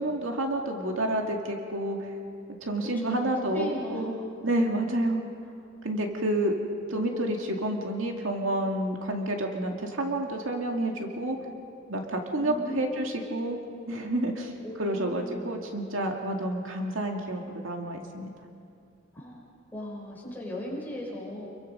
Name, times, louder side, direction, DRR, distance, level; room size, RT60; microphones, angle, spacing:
voice 1, 0.0-2.1 2.6-4.1 4.4-5.2 5.8-6.6 6.9-11.4 11.9-13.6 13.9-18.3, right 1 dB, 75° right, 2 dB, 2.3 m, -29 dB
voice 2, 3.0-4.1 12.3-13.5 14.6-15.5 19.1-19.5 19.7-21.5, equal, 10° left, -5 dB, 6.0 m, -38 dB
28.5 x 23.0 x 5.4 m, 2.4 s
head